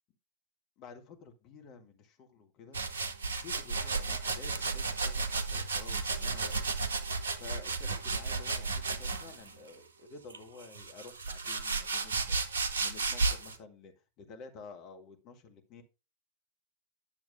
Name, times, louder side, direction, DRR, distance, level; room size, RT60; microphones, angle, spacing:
voice 1, 0.8-2.8 3.2-6.5 7.4-12.4 12.8-15.8, left 4 dB, 40° left, 4 dB, 1.7 m, -51 dB
sound 1, 2.7-9.5 10.3-13.6, right 4 dB, 70° right, 0.8 m, -33 dB
10.0 x 6.9 x 2.6 m, 0.28 s
figure-of-eight pair, 90°, 0 cm